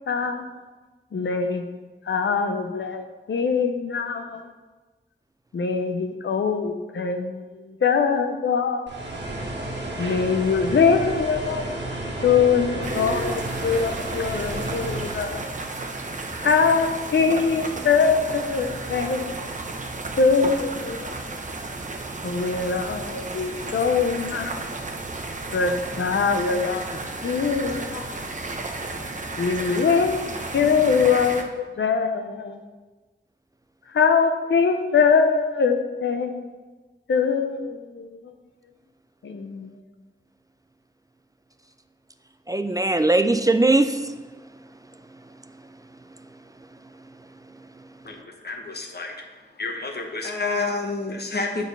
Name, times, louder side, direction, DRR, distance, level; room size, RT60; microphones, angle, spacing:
voice 1, 0.1-0.5 1.1-1.7 2.0-4.5 5.5-8.9 10.0-11.7 12.2-15.4 16.4-19.3 20.2-21.2 22.2-24.6 25.5-28.2 29.4-30.3 30.5-32.6 33.9-36.5 37.1-38.3 39.2-39.8, left 5 dB, 90° left, 5 dB, 0.6 m, -23 dB
sound 1, 8.9-15.4, right 1 dB, 70° right, 1.3 m, -31 dB
sound 2, 12.8-31.4, right 2 dB, 40° right, 0.7 m, -33 dB
voice 2, 42.5-48.2, right 2 dB, 20° right, 8 dB, 0.4 m, -25 dB
voice 3, 48.0-49.3 49.6-51.6, left 3 dB, 60° left, 2 dB, 1.0 m, -29 dB
7.2 x 4.0 x 5.4 m, 1.3 s
wide cardioid pair, 60°, 19 cm